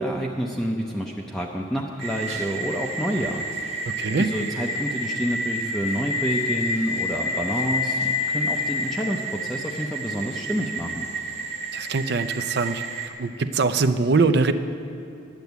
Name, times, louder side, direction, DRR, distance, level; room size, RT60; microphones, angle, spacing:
voice 1, 0.0-3.8 4.2-11.1, equal, ahead, -2 dB, 0.6 m, -28 dB
sound 1, 2.0-13.1, left 1 dB, 35° right, 1.0 m, -29 dB
voice 2, 4.0-4.3 11.7-12.8 13.2-14.5, right 4 dB, 55° right, 10 dB, 0.5 m, -22 dB
10.5 x 8.3 x 8.0 m, 2.7 s
head